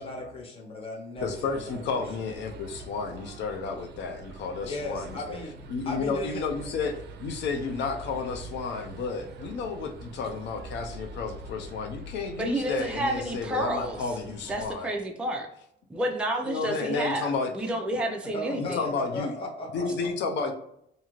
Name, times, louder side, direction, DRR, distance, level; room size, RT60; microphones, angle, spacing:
voice 1, 0.0-1.8 4.6-5.5 5.9-6.4 16.8-16.9 17.7-17.8 18.3-20.1, left 2 dB, 30° left, -2 dB, 0.8 m, -36 dB
voice 2, 1.2-5.4 5.7-14.9 16.4-17.5 18.6-19.3 19.7-20.5, left 4 dB, 75° left, 5 dB, 0.5 m, -32 dB
sound 1, 1.2-14.7, right 2 dB, 65° right, 0.4 m, -44 dB
voice 3, 12.4-14.0 14.5-15.5 15.9-18.8, right 1 dB, 5° right, 2 dB, 0.3 m, -30 dB
2.7 x 2.4 x 2.9 m, 0.73 s
cardioid pair, 135°, 18 cm